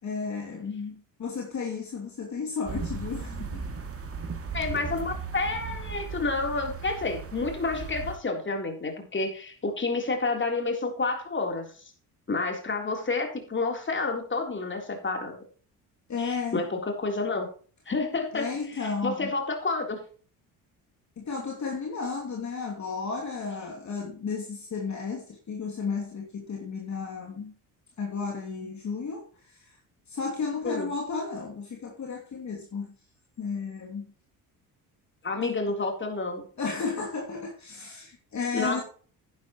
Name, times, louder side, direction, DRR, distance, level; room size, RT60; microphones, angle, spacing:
voice 1, 0.0-3.7 16.1-16.6 18.3-19.3 21.2-27.5 28.0-29.8 30.1-32.9 33.4-34.0 35.4-35.6 36.6-38.8, left 5 dB, 45° left, 2.8 m, -33 dB
sound 1, 2.7-8.2, right 5 dB, 35° right, 2.5 m, -36 dB
voice 2, 4.5-11.7 12.3-15.3 16.2-17.5 17.9-18.5 18.7-20.0 30.6-30.9 35.2-36.4 38.5-38.8, left 3 dB, 30° left, 3.7 m, -29 dB
11.0 x 10.5 x 3.1 m
supercardioid pair, 80°, 40 cm